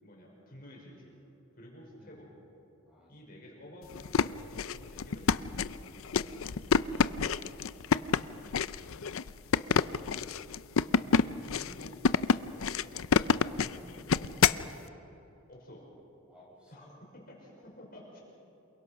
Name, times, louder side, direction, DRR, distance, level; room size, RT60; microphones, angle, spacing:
voice 1, 0.0-1.2 1.6-2.3 3.1-6.8 8.4-8.7 11.6-12.0 12.5-12.8 15.5-15.9 16.7-16.9 17.4-18.2, equal, 45° left, -3 dB, 5.5 m, -51 dB
sound 1, 3.9-14.7, left 6 dB, 80° left, 0.5 m, -28 dB
voice 2, 7.2-7.6 9.1-9.3 11.0-11.7 13.5-14.5 16.3-16.9, equal, 5° right, -5 dB, 6.7 m, -54 dB
28.0 x 23.0 x 5.8 m, 2.9 s
head